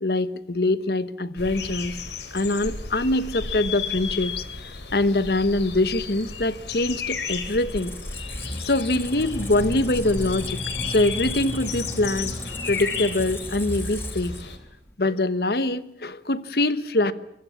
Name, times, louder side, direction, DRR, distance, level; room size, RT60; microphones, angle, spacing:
voice 1, 0.0-2.0 2.3-4.4 4.9-7.9 8.6-12.3 12.7-14.4 15.0-17.1, left 2 dB, 60° left, 15 dB, 1.1 m, -24 dB
sound 1, 1.4-14.6, left 5 dB, 85° left, 3.4 m, -34 dB
Squeak, 7.2-14.9, left 1 dB, 15° left, 1.7 m, -34 dB
24.5 x 22.5 x 7.1 m, 0.83 s
head